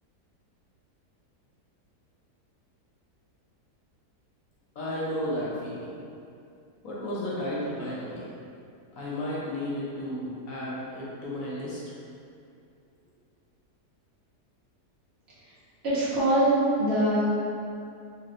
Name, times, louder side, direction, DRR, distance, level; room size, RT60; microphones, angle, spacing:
voice 1, 4.7-6.0 6.8-8.3 9.0-11.8, left 1 dB, 60° left, -7 dB, 1.0 m, -33 dB
voice 2, 15.8-17.5, right 1 dB, 40° right, -11 dB, 1.4 m, -23 dB
4.0 x 3.1 x 2.5 m, 2.5 s
omnidirectional pair, 1.8 m